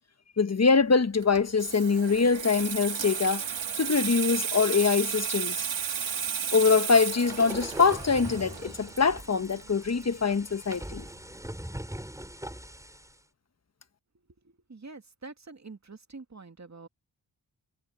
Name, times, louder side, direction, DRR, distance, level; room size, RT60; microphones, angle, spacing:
voice 1, 0.4-3.4 3.8-5.7 6.5-11.1, left 5 dB, 35° left, 1.3 m, -24 dB
Water tap faucet / Sink (filling or washing), 1.2-10.5 10.8-11.1, right 7 dB, 75° right, 2.6 m, -33 dB
sound 1, 7.2-13.2, right 1 dB, 5° right, 5.4 m, -41 dB
voice 2, 14.4-16.9, right 3 dB, 35° right, 2.5 m, -46 dB
cardioid pair, 40°, 45 cm